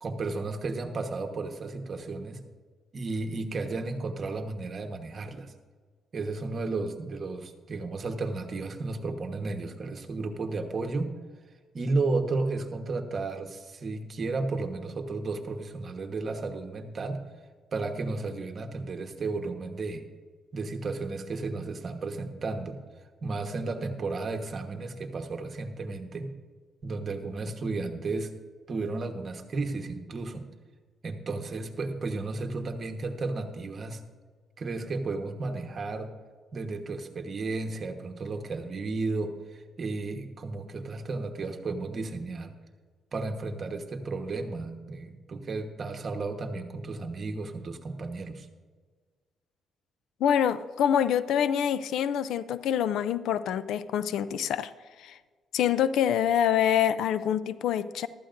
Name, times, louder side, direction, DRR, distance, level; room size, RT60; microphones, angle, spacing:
voice 1, 0.0-2.4 2.9-5.5 6.1-11.1 11.7-17.2 17.7-20.0 20.5-22.8 23.2-26.3 26.8-28.3 28.7-30.4 31.0-34.0 34.6-36.1 36.5-42.5 43.1-48.5, right 3 dB, 45° right, 5 dB, 1.2 m, -33 dB
voice 2, 50.2-54.7 55.0-55.2 55.5-58.1, left 9 dB, 80° left, 15 dB, 0.4 m, -26 dB
14.5 x 12.5 x 2.6 m, 1.5 s
cardioid pair, 90°, 0 cm